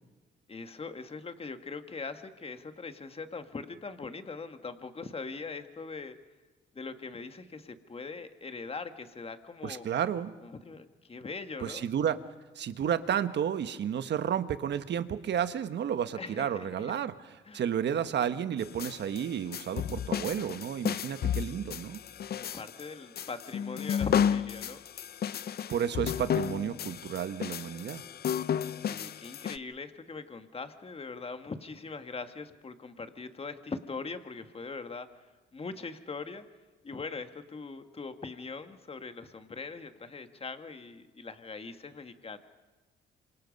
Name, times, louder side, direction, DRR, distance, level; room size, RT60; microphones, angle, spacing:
voice 1, 0.5-6.2 6.7-9.9 10.4-11.9 16.1-16.9 17.5-17.6 22.4-24.8 28.9-35.1 35.5-36.5 36.8-42.4, left 4 dB, 30° left, 8 dB, 1.8 m, -41 dB
voice 2, 9.6-10.3 11.6-12.2 12.5-17.1 17.5-22.0 25.7-28.0, right 9 dB, 60° right, 11 dB, 1.3 m, -31 dB
sound 1, 18.6-29.6, left 8 dB, 50° left, 0.6 m, -32 dB
27.0 x 26.0 x 5.4 m, 1.2 s
cardioid pair, 90°, 20 cm